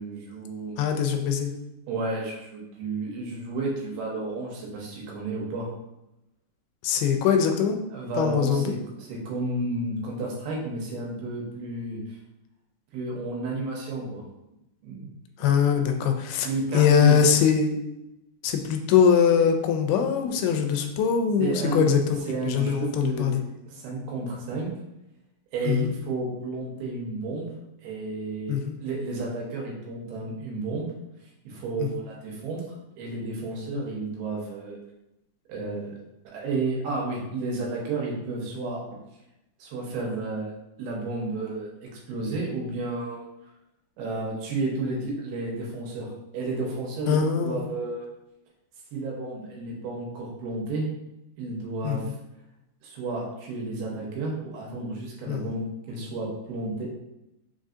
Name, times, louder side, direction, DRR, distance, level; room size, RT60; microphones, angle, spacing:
voice 1, 0.0-0.8 1.9-5.7 7.9-12.0 12.9-14.2 14.8-15.1 16.4-17.2 21.4-21.9 22.3-23.3 23.7-24.7 25.5-27.5 27.8-30.9 31.5-32.6 33.0-34.8 35.5-36.0 36.2-38.8 39.6-40.5 40.8-43.3 44.0-47.2 47.4-48.0 48.9-50.9 51.4-52.1 52.8-56.8, right 3 dB, 80° right, -2 dB, 2.8 m, -31 dB
voice 2, 0.8-1.5 6.8-7.8 8.2-8.7 15.4-16.5 16.7-17.8 18.4-23.4 25.7-25.9 28.5-28.7 31.8-31.9 47.1-47.6 51.8-52.1 55.3-55.4, left 7 dB, 85° left, 5 dB, 2.5 m, -22 dB
6.0 x 2.6 x 2.4 m, 0.90 s
omnidirectional pair, 4.5 m